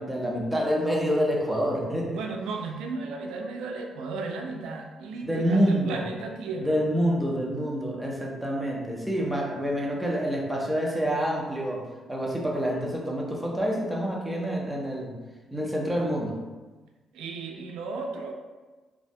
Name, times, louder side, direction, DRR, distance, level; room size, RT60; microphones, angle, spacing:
voice 1, 0.0-2.2 5.2-6.1 6.6-15.2 15.5-16.4, equal, 5° right, -3 dB, 0.5 m, -27 dB
voice 2, 2.1-6.8 17.1-18.3, right 3 dB, 90° right, 3 dB, 0.3 m, -34 dB
2.5 x 2.1 x 2.6 m, 1.3 s
cardioid pair, 90°, 0 cm